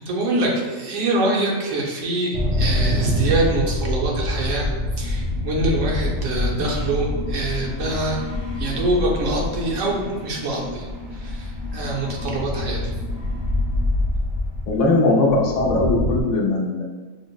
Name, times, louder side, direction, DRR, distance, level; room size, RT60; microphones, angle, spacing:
voice 1, 0.1-4.7 5.0-8.2 8.6-10.9 11.2-12.8, right 2 dB, 75° right, -2 dB, 1.0 m, -24 dB
sound 1, 2.3-16.2, left 1 dB, 30° right, 0.7 m, -26 dB
voice 2, 14.7-16.8, left 2 dB, 70° left, -1 dB, 0.9 m, -19 dB
5.1 x 2.0 x 2.3 m, 1.3 s
omnidirectional pair, 1.4 m